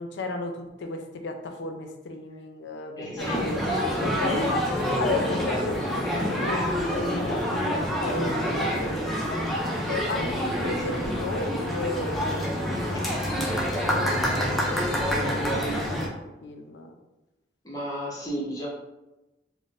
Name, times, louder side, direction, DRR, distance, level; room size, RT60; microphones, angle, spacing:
voice 1, 0.0-9.4 9.9-13.3 13.8-16.0 16.4-17.0, left 2 dB, 75° left, 4 dB, 0.4 m, -34 dB
voice 2, 3.0-4.0 12.9-13.0 17.6-18.7, equal, 20° left, -4 dB, 0.7 m, -34 dB
sound 1, 3.2-16.1, equal, ahead, 0.4 m, -27 dB
2.5 x 2.0 x 3.9 m, 0.99 s
head